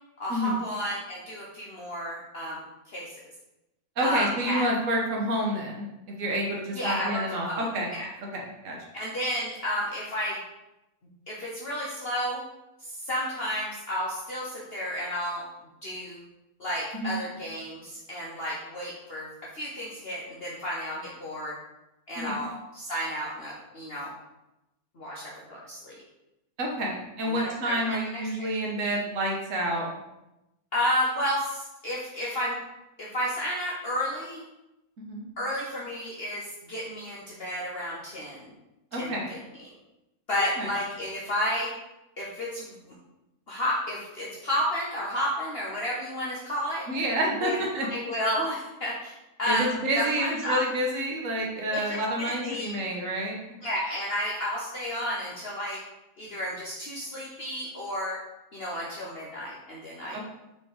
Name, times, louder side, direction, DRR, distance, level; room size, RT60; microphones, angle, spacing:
voice 1, 0.2-3.1 4.0-4.6 6.7-7.7 7.9-8.1 8.9-10.4 11.3-12.4 12.8-15.4 15.8-16.2 16.6-19.3 19.5-21.6 22.1-24.1 25.0-26.0 27.2-28.0 28.4-28.5 30.7-32.6 33.0-34.4 35.4-38.5 39.0-39.1 39.6-39.7 40.3-41.7 42.2-42.9 43.5-46.9 47.4-47.6 47.9-49.1 49.4-50.6 51.7-52.7 53.6-55.8 56.2-58.2 58.5-60.2, equal, 45° left, -5 dB, 1.2 m, -31 dB
voice 2, 4.0-5.9 6.2-7.9 8.3-8.8 16.9-17.2 22.1-22.4 26.6-29.9 35.1-35.3 38.9-39.3 40.6-40.7 46.9-47.9 49.5-53.4 60.1-60.2, right 1 dB, 60° right, -1 dB, 1.6 m, -29 dB
5.9 x 4.8 x 4.9 m, 0.94 s
omnidirectional pair, 1.6 m